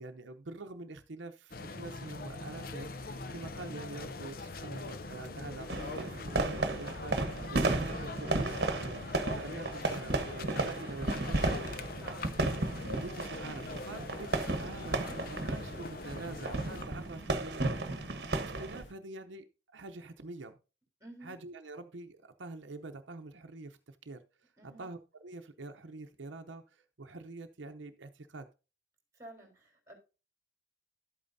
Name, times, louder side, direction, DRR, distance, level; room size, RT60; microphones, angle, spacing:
voice 1, 0.0-11.5 12.9-19.5 19.7-20.6 21.2-24.5 24.8-28.5, right 3 dB, 75° right, 0.7 m, -46 dB
sound 1, 1.5-16.8, left 3 dB, 50° left, 0.6 m, -43 dB
sound 2, 5.7-18.8, right 2 dB, 55° right, 1.2 m, -34 dB
sound 3, 11.1-18.9, left 1 dB, 75° left, 1.2 m, -54 dB
voice 2, 11.2-12.4 13.9-14.2 21.0-21.3 24.6-24.9 29.1-29.9, right 1 dB, 15° right, 3.5 m, -53 dB
12.0 x 8.6 x 2.7 m
head